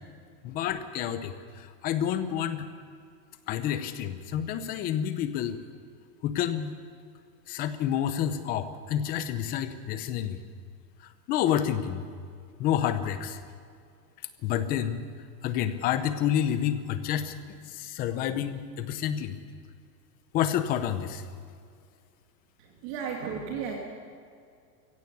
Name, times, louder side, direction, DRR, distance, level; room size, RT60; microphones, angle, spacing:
voice 1, 0.4-2.7 3.5-5.6 6.2-6.7 7.5-10.4 11.3-12.0 12.6-13.4 14.4-15.0 15.4-19.4 20.3-21.2, left 10 dB, 20° left, 10 dB, 0.7 m, -29 dB
voice 2, 22.6-23.8, right 6 dB, 40° right, 0 dB, 2.5 m, -34 dB
23.5 x 16.5 x 7.0 m, 2.3 s
supercardioid pair, 160°, 50 cm